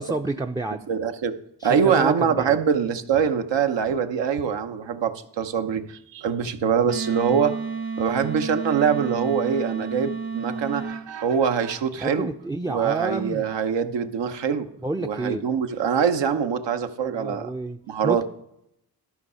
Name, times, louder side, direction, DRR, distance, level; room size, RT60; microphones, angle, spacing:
voice 1, 0.0-0.9 1.6-2.6 12.0-13.5 14.8-15.5 17.0-17.8 18.0-18.2, right 2 dB, 10° right, 4 dB, 0.5 m, -29 dB
voice 2, 0.9-1.4 1.6-7.6 8.0-12.3 12.7-14.7 15.0-17.5 17.9-18.2, right 7 dB, 70° right, 8 dB, 0.8 m, -24 dB
Wind instrument woodwind instrument, 6.8-11.0, right 4 dB, 50° right, 1.3 m, -31 dB
12.0 x 5.5 x 5.6 m, 0.79 s
supercardioid pair, 45°, 44 cm